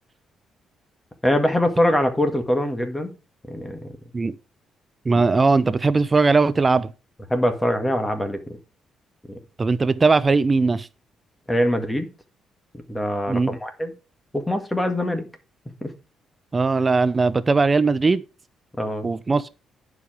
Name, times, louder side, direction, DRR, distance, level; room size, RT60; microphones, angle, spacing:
voice 1, 1.2-3.1 3.5-3.9 7.3-8.4 9.3-9.4 11.5-12.1 12.9-13.9 14.3-15.3 15.8-15.9 18.8-19.1, left 1 dB, 10° left, 1.8 m, -23 dB
voice 2, 5.1-6.9 9.6-10.9 13.3-13.6 16.5-18.2 19.0-19.5, right 4 dB, 30° right, 0.5 m, -19 dB
10.0 x 4.9 x 5.0 m
cardioid pair, 90°, 0 cm